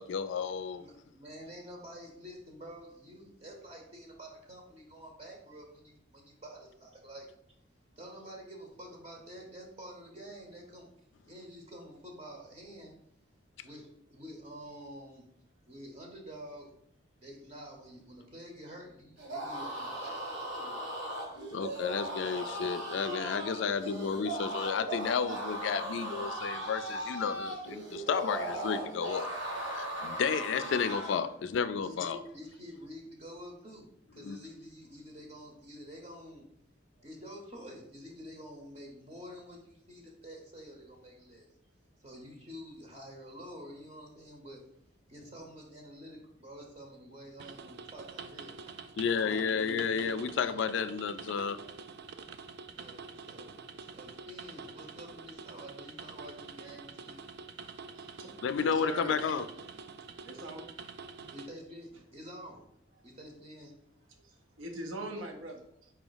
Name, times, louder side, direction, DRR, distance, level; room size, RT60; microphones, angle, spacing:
voice 1, 0.0-0.9 21.5-29.3 29.7-32.2 34.2-34.4 49.0-51.6 58.4-59.4, left 6 dB, 70° left, 0.3 m, -32 dB
voice 2, 0.8-7.3 7.9-10.9 11.3-12.9 13.6-15.3 15.6-16.7 17.2-20.8 31.8-36.4 37.0-41.5 42.0-44.6 45.1-48.6 49.1-51.0 52.7-57.2 61.2-62.7 63.0-63.7, equal, 30° right, 0.7 m, -48 dB
sound 1, 19.2-31.3, right 1 dB, 70° right, 1.4 m, -38 dB
sound 2, 47.4-61.5, right 5 dB, 55° right, 0.3 m, -47 dB
voice 3, 58.0-59.2 60.2-60.7 61.2-61.3 64.2-65.9, right 1 dB, 90° right, 0.7 m, -42 dB
4.3 x 3.0 x 3.9 m
head